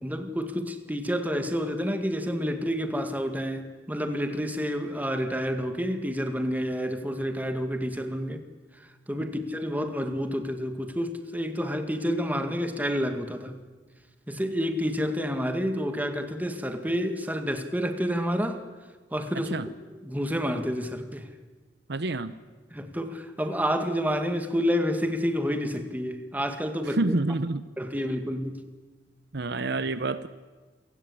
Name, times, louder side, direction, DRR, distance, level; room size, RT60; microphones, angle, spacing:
voice 1, 0.0-8.4 9.1-13.6 14.3-18.6 19.1-19.5 19.9-21.3 22.7-27.1 27.8-28.6, equal, 10° right, 7 dB, 1.9 m, -29 dB
voice 2, 21.9-22.4 26.8-27.7 29.3-30.3, right 2 dB, 65° right, 14 dB, 0.9 m, -28 dB
28.0 x 16.5 x 8.5 m, 1.3 s
head